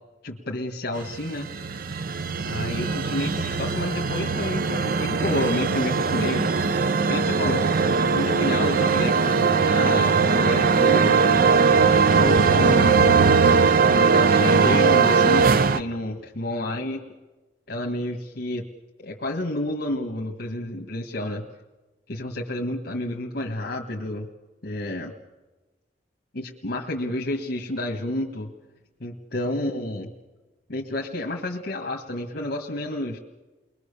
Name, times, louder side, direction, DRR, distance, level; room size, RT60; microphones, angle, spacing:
voice 1, 0.2-1.5 2.4-6.5 7.1-7.7 8.1-11.6 12.1-13.1 14.0-17.1 17.7-18.7 19.0-21.4 22.1-24.3 24.6-25.1 26.3-28.5 29.0-30.1 30.7-33.2, left 1 dB, 60° left, 1 dB, 1.7 m, -30 dB
sound 1, 1.1-15.8, right 5 dB, 55° right, 0.7 m, -20 dB
29.5 x 21.5 x 6.9 m, 1.2 s
head